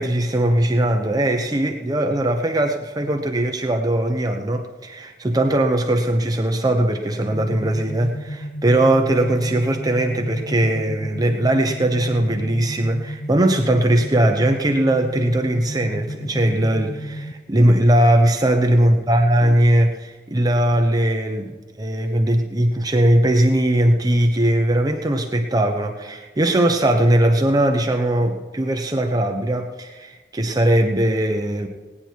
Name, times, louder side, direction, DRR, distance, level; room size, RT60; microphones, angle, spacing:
voice 1, 0.0-31.7, right 1 dB, 20° right, 3 dB, 0.9 m, -19 dB
sound 1, 7.3-17.3, equal, 35° left, 0.6 m, -33 dB
18.5 x 9.7 x 4.6 m, 1.3 s
head